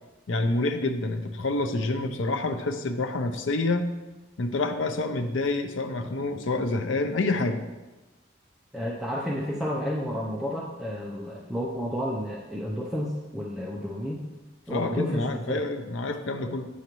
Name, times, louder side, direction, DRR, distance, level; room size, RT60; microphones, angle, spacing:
voice 1, 0.3-3.9 4.4-7.6 14.7-16.7, left 2 dB, 75° left, 6 dB, 0.6 m, -27 dB
voice 2, 8.7-14.3 14.7-15.7, equal, ahead, -4 dB, 0.5 m, -31 dB
8.4 x 6.5 x 3.0 m, 1.2 s
head